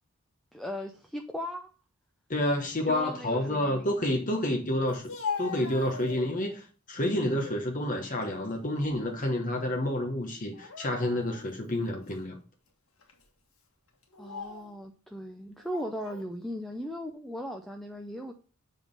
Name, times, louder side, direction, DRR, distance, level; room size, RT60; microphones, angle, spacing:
voice 1, 0.5-1.7 2.9-3.9 14.2-18.3, equal, ahead, 0.5 m, -37 dB
voice 2, 2.3-5.1 5.4-12.4, left 1 dB, 35° left, 1.1 m, -29 dB
Speech, 4.9-6.5 7.0-7.6 8.0-9.3 9.5-9.7 10.5-11.5 12.1-12.2 13.0-13.2 14.0-14.7 15.6-16.3, left 5 dB, 70° left, 1.7 m, -40 dB
7.5 x 3.7 x 5.2 m
head